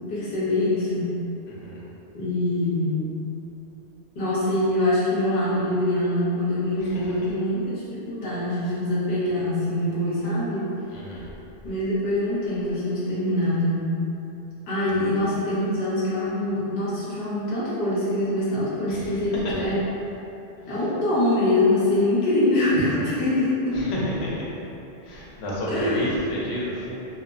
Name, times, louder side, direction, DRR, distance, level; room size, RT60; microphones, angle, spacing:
voice 1, 0.1-1.1 2.1-3.1 4.1-10.7 11.6-13.9 14.7-19.8 20.7-23.8 25.7-26.2, left 1 dB, 45° left, -10 dB, 0.8 m, -24 dB
voice 2, 10.9-11.3 18.9-19.2 19.4-19.5 23.8-24.5 25.0-27.1, left 1 dB, 75° left, -6 dB, 0.9 m, -30 dB
2.9 x 2.0 x 2.5 m, 2.8 s
omnidirectional pair, 1.1 m